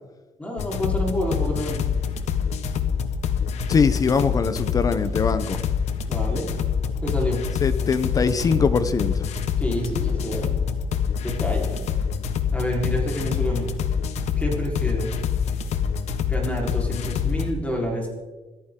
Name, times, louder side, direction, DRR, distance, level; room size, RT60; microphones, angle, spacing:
voice 1, 0.4-1.8 6.1-6.5 7.0-7.4 9.6-10.6 11.2-11.9 12.5-13.7 14.4-15.2 16.3-18.1, equal, 10° left, -1 dB, 4.2 m, -28 dB
sound 1, 0.6-17.5, left 7 dB, 65° left, 1.3 m, -26 dB
voice 2, 3.7-5.6 7.6-9.1, left 5 dB, 30° left, 12 dB, 0.9 m, -22 dB
25.5 x 14.0 x 3.8 m, 1.2 s
cardioid pair, 160°, 12 cm